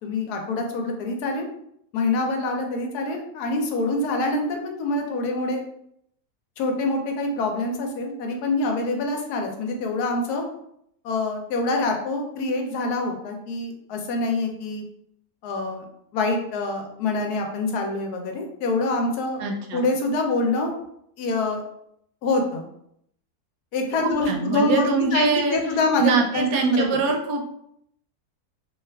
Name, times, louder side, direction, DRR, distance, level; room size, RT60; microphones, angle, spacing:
voice 1, 0.0-1.5 1.9-5.6 6.6-10.5 11.0-14.8 15.4-15.9 16.1-19.4 19.7-20.7 21.2-21.6 22.2-22.7 23.7-26.9, left 2 dB, 80° left, 3 dB, 1.2 m, -25 dB
voice 2, 19.4-19.8 24.0-25.6 26.0-27.5, right 4 dB, 75° right, 2 dB, 1.0 m, -23 dB
3.0 x 2.3 x 3.3 m, 0.73 s
omnidirectional pair, 1.6 m